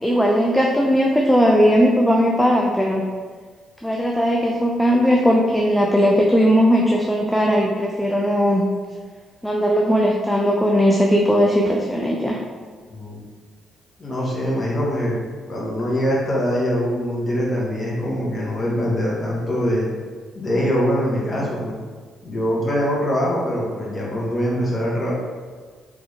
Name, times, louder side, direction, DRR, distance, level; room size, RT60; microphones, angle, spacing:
voice 1, 0.0-3.1 3.8-8.6 9.4-12.4, equal, 5° left, -1 dB, 0.5 m, -18 dB
voice 2, 14.0-15.2 15.5-19.9 20.3-21.7 22.2-25.1, equal, 35° left, -5 dB, 1.4 m, -23 dB
3.6 x 3.5 x 3.5 m, 1.5 s
cardioid pair, 90°, 0 cm